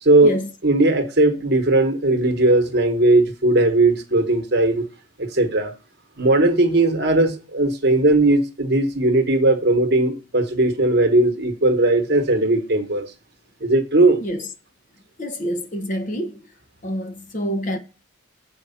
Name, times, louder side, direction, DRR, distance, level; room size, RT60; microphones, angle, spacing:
voice 1, 0.0-0.3 0.6-4.8 5.2-5.7 6.2-13.1 13.6-14.2, right 2 dB, 50° right, 1.1 m, -18 dB
voice 2, 15.2-16.4 16.8-17.8, equal, 35° left, 0.8 m, -27 dB
7.3 x 4.7 x 5.6 m
head